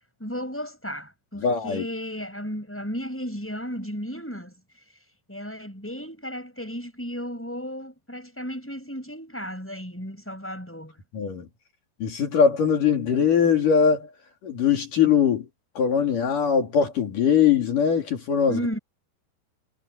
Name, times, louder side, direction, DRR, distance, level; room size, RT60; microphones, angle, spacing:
voice 1, 0.2-4.6 5.3-11.0 18.5-18.8, equal, 5° left, 6.6 m, -34 dB
voice 2, 1.4-1.9 11.1-11.5 12.0-14.1 14.4-15.5 15.8-18.6, left 7 dB, 55° left, 4.4 m, -21 dB
omnidirectional pair, 4.6 m